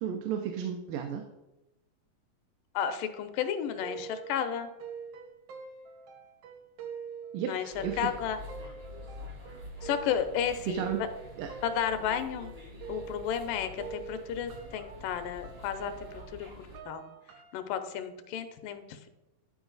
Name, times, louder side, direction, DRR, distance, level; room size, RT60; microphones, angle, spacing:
voice 1, 0.0-1.2 7.3-8.1 10.7-11.0 11.4-11.5, right 8 dB, 90° right, 4 dB, 2.3 m, -33 dB
voice 2, 2.8-4.7 7.5-8.4 9.8-11.1 11.6-12.5 12.9-15.9 16.3-16.5 16.9-17.0 17.5-19.1, left 8 dB, 90° left, 9 dB, 2.3 m, -32 dB
sound 1, 3.3-13.5 13.8-17.6, right 7 dB, 65° right, 1.5 m, -46 dB
sound 2, 7.7-16.8, left 1 dB, 45° right, 0.7 m, -46 dB
11.0 x 4.7 x 3.9 m, 0.97 s
omnidirectional pair, 3.7 m